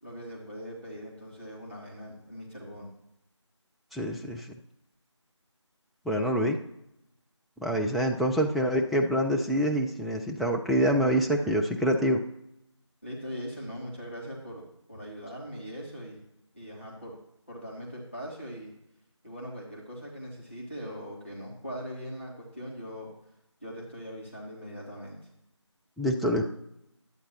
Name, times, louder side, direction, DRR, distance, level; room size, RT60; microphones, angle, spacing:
voice 1, 0.0-2.9 13.0-16.2 16.5-17.2 17.5-18.7 19.2-23.1 23.6-25.2, equal, 25° left, -4 dB, 1.2 m, -41 dB
voice 2, 3.9-4.5 6.1-6.6 7.6-12.2 26.0-26.4, equal, ahead, 0 dB, 0.3 m, -26 dB
11.0 x 8.3 x 2.8 m, 0.81 s
figure-of-eight pair, 180°, 16 cm